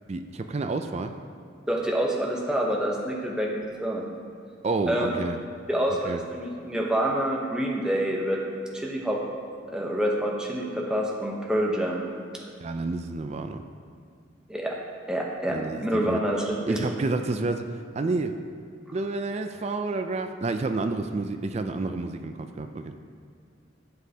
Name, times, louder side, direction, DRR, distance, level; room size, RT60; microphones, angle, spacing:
voice 1, 0.1-1.1 4.6-5.4 6.1-6.2 12.6-13.6 15.5-16.2 16.7-17.7 17.9-18.4 18.9-23.0, right 3 dB, 30° right, 7 dB, 0.3 m, -29 dB
voice 2, 1.7-4.0 4.9-5.1 5.7-8.4 8.7-9.2 9.7-12.0 14.5-14.8 15.1-16.8, right 1 dB, 5° right, -2 dB, 0.8 m, -27 dB
11.5 x 7.3 x 2.8 m, 2.3 s
head